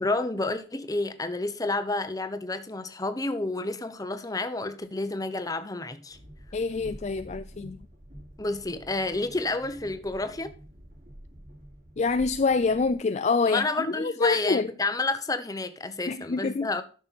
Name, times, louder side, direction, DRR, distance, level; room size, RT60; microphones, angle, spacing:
voice 1, 0.0-6.2 8.4-10.5 13.5-16.8, left 2 dB, 20° left, 0.9 m, -30 dB
Train, 6.1-12.9, equal, 45° right, 4.1 m, -48 dB
voice 2, 6.5-7.8 12.0-14.7 16.1-16.7, left 4 dB, 40° left, 0.4 m, -26 dB
13.0 x 6.3 x 4.2 m
head